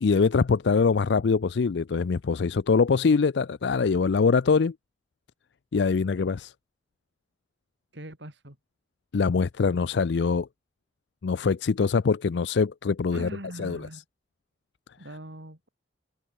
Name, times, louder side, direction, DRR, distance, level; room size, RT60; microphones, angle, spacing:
voice 1, 0.0-4.7 5.7-6.5 9.1-10.5 11.2-13.3 13.6-13.9, left 5 dB, 70° left, 0.4 m, -23 dB
voice 2, 7.9-8.6 13.1-14.0 15.0-15.7, right 1 dB, 70° right, 4.9 m, -41 dB
head